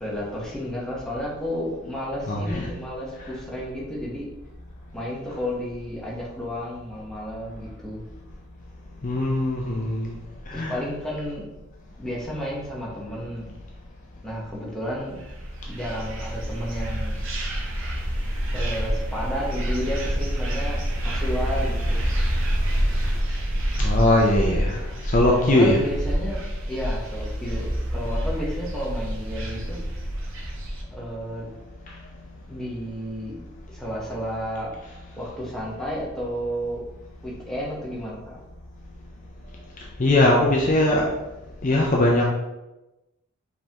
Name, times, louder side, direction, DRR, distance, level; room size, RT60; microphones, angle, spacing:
voice 1, 0.0-4.3 4.9-8.0 10.5-11.5 12.0-13.5 14.2-15.3 15.7-17.2 18.5-22.1 25.2-29.8 30.9-31.5 32.5-33.4 33.7-34.7 35.2-36.8 37.2-38.4, equal, 5° left, -6 dB, 1.0 m, -32 dB
voice 2, 2.3-2.7 9.0-10.1 10.5-10.7 23.8-24.8 25.1-25.8 40.0-41.0 41.6-42.3, left 1 dB, 35° left, -1 dB, 0.5 m, -20 dB
sound 1, 15.1-30.8, equal, 60° right, 0.8 m, -27 dB
5.2 x 3.6 x 2.9 m, 1.0 s
head